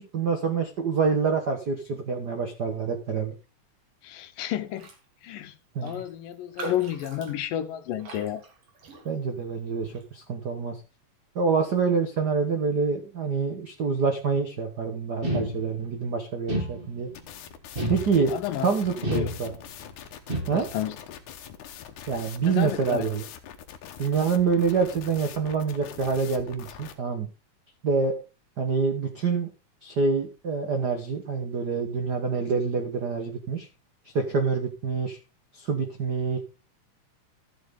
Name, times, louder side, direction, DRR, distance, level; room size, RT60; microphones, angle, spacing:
voice 1, 0.0-3.3 5.7-6.0 9.0-10.8 11.3-17.1 17.9-18.3 18.6-19.5 20.5-20.7 22.1-23.2 24.0-27.3 27.8-28.1 28.6-29.5 29.8-33.7 34.1-35.2 35.5-36.4, right 5 dB, 80° right, 0.9 m, -26 dB
voice 2, 4.0-4.9 5.2-5.5 5.8-8.4 18.3-18.7 19.1-19.3 20.5-21.0 22.5-23.1, left 11 dB, 85° left, 2.7 m, -31 dB
Raindrop, 4.7-5.0 5.3-5.4 5.8-9.4 9.8-10.1, right 3 dB, 50° right, 2.5 m, -42 dB
sound 1, 15.2-16.0 16.5-17.2 17.8-18.5 19.0-19.8 20.3-20.9, equal, 20° right, 1.7 m, -31 dB
sound 2, 17.1-26.9, left 9 dB, 70° left, 2.4 m, -43 dB
13.5 x 7.3 x 3.7 m
omnidirectional pair, 3.8 m